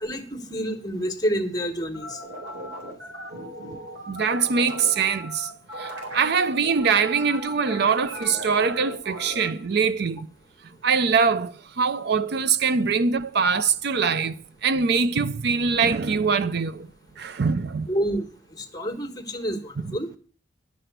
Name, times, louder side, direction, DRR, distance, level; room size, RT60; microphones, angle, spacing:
voice 1, 0.0-2.2 17.9-18.3 18.6-20.1, equal, 20° left, 1.4 m, -28 dB
sound 1, 1.9-9.5, equal, 90° right, 4.0 m, -37 dB
voice 2, 4.1-5.5 5.8-10.3 10.8-14.4 14.6-16.9 17.2-17.9 19.8-20.0, right 5 dB, 60° right, 0.5 m, -23 dB
11.0 x 5.9 x 8.0 m
head